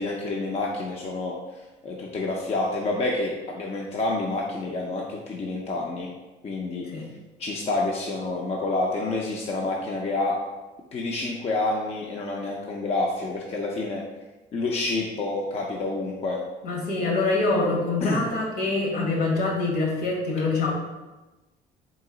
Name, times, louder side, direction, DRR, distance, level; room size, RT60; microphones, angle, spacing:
voice 1, 0.0-1.3 1.8-6.1 6.4-6.9 7.4-10.4 10.9-14.0 14.5-16.4 18.0-18.2, left 2 dB, 35° left, -2 dB, 0.5 m, -28 dB
voice 2, 16.6-20.7, left 3 dB, 65° left, -1 dB, 1.3 m, -25 dB
3.9 x 2.7 x 3.8 m, 1.1 s
cardioid pair, 110°, 17 cm